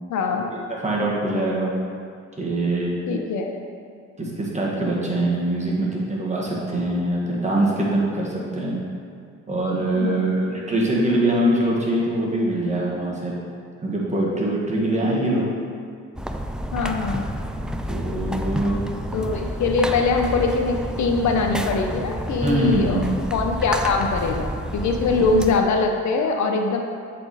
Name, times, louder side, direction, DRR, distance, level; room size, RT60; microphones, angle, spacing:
voice 1, 0.1-0.5 3.1-3.5 9.9-10.3 14.7-14.8 16.7-17.2 19.1-23.0 23.3-26.8, left 4 dB, 70° left, 3 dB, 0.8 m, -22 dB
voice 2, 0.8-1.7 2.4-2.9 4.2-8.8 9.5-13.4 13.8-15.5 17.9-18.8 22.4-23.0, right 1 dB, 25° right, -4 dB, 1.8 m, -23 dB
sound 1, 16.2-25.6, equal, 5° right, 0.3 m, -29 dB
7.5 x 4.3 x 4.9 m, 2.2 s
cardioid pair, 90°, 30 cm